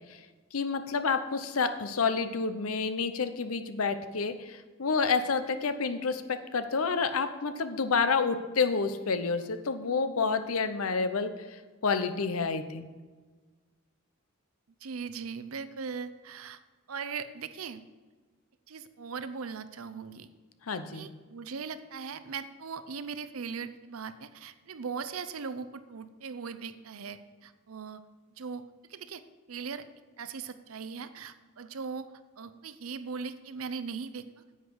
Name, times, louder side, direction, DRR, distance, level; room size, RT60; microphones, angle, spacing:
voice 1, 0.5-12.9 20.7-21.1, left 5 dB, 85° left, 10 dB, 0.7 m, -29 dB
voice 2, 14.8-16.6 16.9-17.8 18.7-20.3 20.9-28.0 28.4-28.6 28.9-29.2 29.5-29.8 30.2-32.1 32.4-34.3, right 5 dB, 80° right, 12 dB, 0.6 m, -39 dB
10.0 x 8.2 x 4.7 m, 1.4 s
head